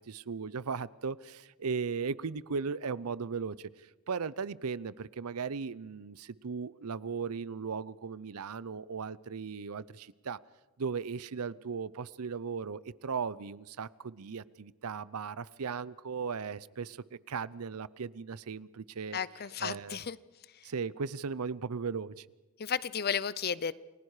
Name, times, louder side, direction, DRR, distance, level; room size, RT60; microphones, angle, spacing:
voice 1, 0.0-3.7 4.1-10.4 10.8-17.0 17.3-19.2 19.6-20.0 20.6-22.3, right 5 dB, 85° right, 20 dB, 0.6 m, -37 dB
voice 2, 19.1-20.2 20.5-20.7 22.6-23.7, left 7 dB, 45° left, 19 dB, 0.6 m, -33 dB
29.5 x 20.0 x 4.9 m, 1.2 s
head